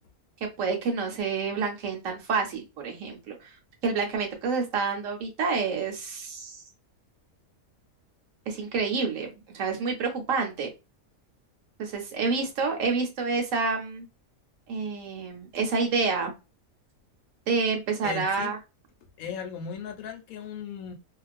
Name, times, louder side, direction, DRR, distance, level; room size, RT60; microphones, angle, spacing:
voice 1, 0.4-3.6 3.8-6.6 8.5-10.7 11.8-14.1 14.7-16.3 17.5-18.6, right 4 dB, 65° right, 1.0 m, -28 dB
voice 2, 18.0-18.5 19.2-20.9, left 7 dB, 75° left, 1.0 m, -36 dB
2.4 x 2.3 x 2.3 m
omnidirectional pair, 1.6 m